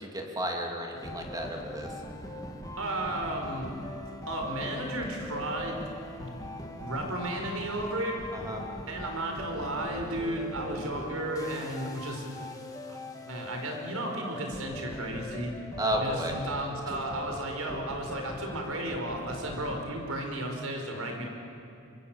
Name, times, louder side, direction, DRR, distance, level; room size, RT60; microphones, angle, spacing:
voice 1, 0.0-1.9 8.3-8.6 15.8-16.3, equal, 20° right, 1 dB, 3.0 m, -32 dB
sound 1, 0.9-19.9, left 1 dB, 15° left, 2.2 m, -41 dB
voice 2, 2.8-3.7 4.3-5.8 6.2-6.4 6.8-8.2 8.9-12.5 12.9-15.5 16.0-21.2, right 1 dB, 80° right, 3 dB, 4.7 m, -34 dB
25.0 x 23.0 x 7.4 m, 2.7 s
head